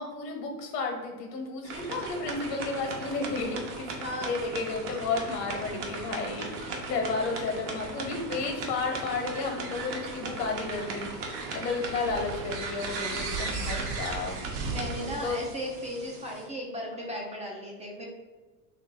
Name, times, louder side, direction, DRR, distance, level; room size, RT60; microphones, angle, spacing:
voice 1, 0.0-14.5 15.0-15.4, left 3 dB, 75° left, 2 dB, 1.1 m, -32 dB
sound 1, 1.6-16.5, right 3 dB, 70° right, 0.9 m, -36 dB
voice 2, 4.0-4.4 14.6-18.1, equal, 15° right, -3 dB, 0.4 m, -36 dB
3.0 x 2.7 x 3.6 m, 1.3 s
hypercardioid pair, 105°, 48 cm